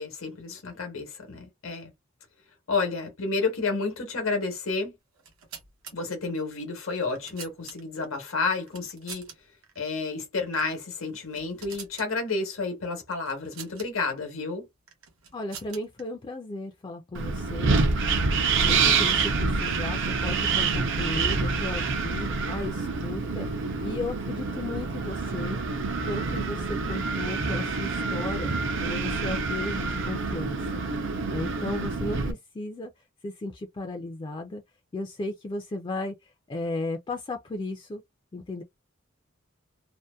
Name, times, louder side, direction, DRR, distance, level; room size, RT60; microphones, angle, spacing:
voice 1, 0.0-1.9 2.7-4.9 5.9-9.3 9.8-14.7, left 4 dB, 80° left, 1.0 m, -30 dB
sound 1, 5.1-5.9 6.8-8.1 8.7-9.4 9.6-9.8 10.5-10.8 11.1-12.1 13.3-13.9 14.9-16.0, right 6 dB, 85° right, 0.9 m, -44 dB
voice 2, 15.3-17.8 18.6-23.5 23.8-25.6 26.0-28.5 28.8-30.6 31.3-32.9 33.2-34.6 34.9-38.0 38.3-38.6, left 2 dB, 25° left, 0.3 m, -35 dB
Wind, 17.1-32.3, right 4 dB, 65° right, 0.5 m, -27 dB
2.6 x 2.1 x 2.2 m
head